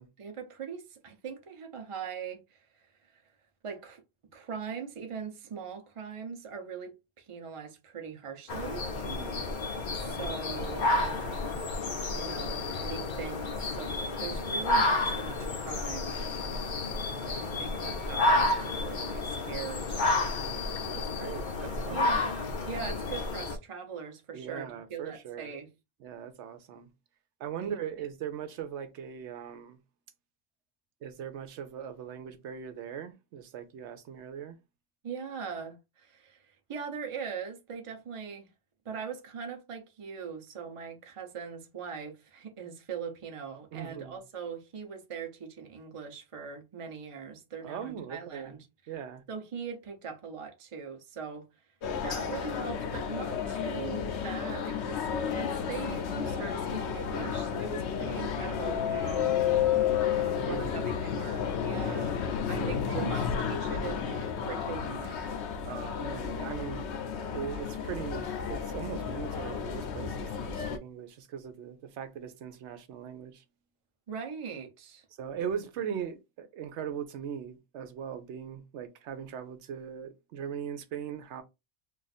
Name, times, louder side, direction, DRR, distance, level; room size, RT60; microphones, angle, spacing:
voice 1, 0.2-2.9 3.1-3.2 3.6-4.0 4.3-8.8 9.9-11.6 12.1-16.2 17.4-20.1 21.9-25.7 27.6-27.7 35.0-38.5 38.8-48.7 49.3-51.5 51.9-59.4 60.2-62.2 62.5-65.3 74.1-75.0, right 6 dB, 35° right, 0.6 m, -41 dB
sound 1, 8.5-23.6, left 2 dB, 55° left, 0.7 m, -31 dB
voice 2, 9.0-9.5 20.8-22.1 24.3-25.5 26.0-26.9 27.4-29.8 31.0-34.6 43.7-44.2 47.6-48.6 48.9-49.2 60.3-60.8 61.7-62.1 62.6-63.3 65.6-66.9 67.1-73.4 75.2-81.4, right 8 dB, 85° right, 0.9 m, -40 dB
sound 2, 51.8-70.8, left 8 dB, 80° left, 0.9 m, -32 dB
2.5 x 2.5 x 4.0 m
omnidirectional pair, 1.1 m